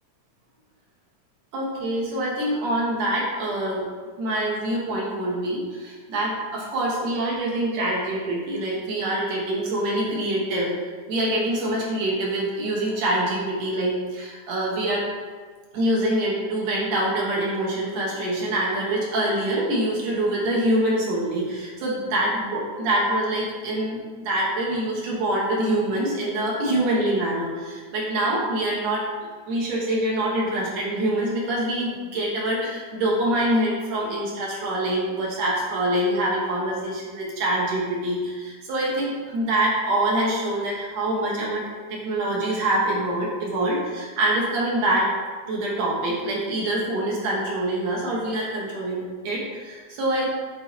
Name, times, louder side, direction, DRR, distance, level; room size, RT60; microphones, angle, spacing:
voice 1, 1.5-3.8 4.2-10.7 11.1-15.1 15.7-24.0 24.2-29.1 29.5-41.6 41.9-45.1 45.5-50.3, right 1 dB, 65° right, -4 dB, 2.3 m, -25 dB
8.2 x 2.9 x 4.1 m, 1.5 s
omnidirectional pair, 3.4 m